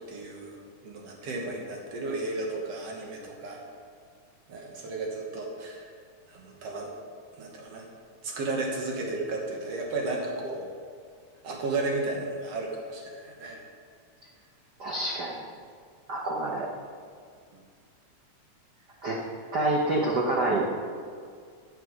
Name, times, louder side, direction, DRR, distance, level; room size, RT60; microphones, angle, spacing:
voice 1, 0.1-3.6 4.5-5.9 6.3-6.9 7.4-7.9 8.2-10.7 11.4-13.7, right 2 dB, 60° right, 0 dB, 2.2 m, -33 dB
voice 2, 14.8-15.3 16.1-16.7 19.0-19.2 19.5-20.7, right 2 dB, 80° right, -2 dB, 0.9 m, -27 dB
14.5 x 6.6 x 5.2 m, 2.1 s
omnidirectional pair, 3.5 m